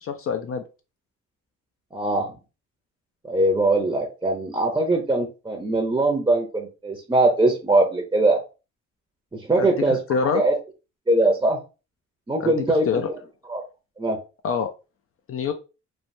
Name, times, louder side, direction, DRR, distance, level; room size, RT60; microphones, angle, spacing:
voice 1, 0.0-0.6 9.6-10.4 12.4-13.1 14.4-14.7 15.3-15.5, left 6 dB, 50° left, 6 dB, 0.4 m, -26 dB
voice 2, 1.9-2.3 3.2-8.4 9.3-10.0 10.3-10.6 11.1-11.6 12.3-12.8 13.5-13.6 14.0-14.2, right 2 dB, 15° right, 1 dB, 0.6 m, -21 dB
3.2 x 2.1 x 2.6 m, 0.31 s
cardioid pair, 90°, 30 cm